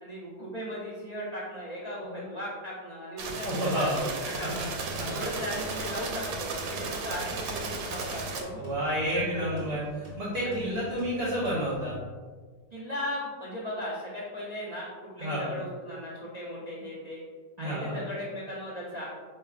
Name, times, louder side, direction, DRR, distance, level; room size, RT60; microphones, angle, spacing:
voice 1, 0.0-3.9 4.4-4.7 5.1-8.7 9.1-9.6 10.4-10.8 12.7-17.2 17.6-19.1, left 1 dB, 40° right, -7 dB, 0.5 m, -37 dB
sound 1, 3.2-8.4, right 4 dB, 85° right, 1.4 m, -35 dB
voice 2, 3.4-4.0 5.0-5.1 8.6-9.8 10.2-12.0 15.2-15.5 17.6-18.0, equal, 60° right, -8 dB, 1.5 m, -30 dB
sound 2, 4.7-11.9, left 1 dB, 30° left, 1.7 m, -45 dB
5.3 x 3.4 x 2.4 m, 1.5 s
omnidirectional pair, 2.0 m